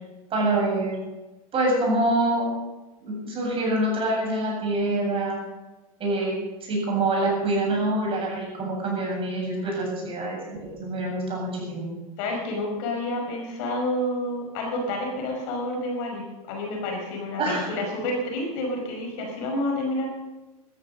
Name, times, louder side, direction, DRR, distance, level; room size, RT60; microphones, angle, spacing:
voice 1, 0.3-1.0 1.5-2.5 3.0-5.4 6.0-6.3 6.6-11.8 17.4-17.7, right 2 dB, 30° right, -2 dB, 7.8 m, -25 dB
voice 2, 12.2-20.1, left 1 dB, 55° left, 2 dB, 5.5 m, -29 dB
15.0 x 13.5 x 6.6 m, 1.1 s
hypercardioid pair, 120°, 18 cm